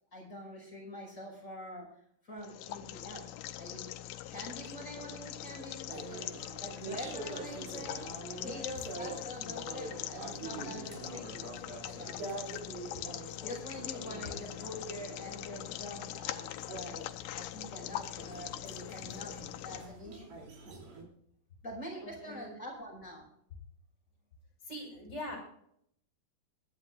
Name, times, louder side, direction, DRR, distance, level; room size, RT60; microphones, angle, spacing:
voice 1, 0.1-1.9 2.2-3.9 4.3-6.3 6.6-8.0 8.4-11.5 11.8-12.4 13.4-17.0 17.3-20.4 21.6-23.3, equal, 20° left, -2 dB, 5.3 m, -45 dB
sound 1, 2.4-19.8, left 13 dB, 90° left, 2.6 m, -42 dB
sound 2, 5.9-21.0, right 3 dB, 70° right, 4.9 m, -46 dB
voice 2, 22.0-22.6 24.6-25.4, left 1 dB, 35° left, 0 dB, 6.6 m, -43 dB
21.5 x 11.5 x 2.5 m, 0.70 s
omnidirectional pair, 4.4 m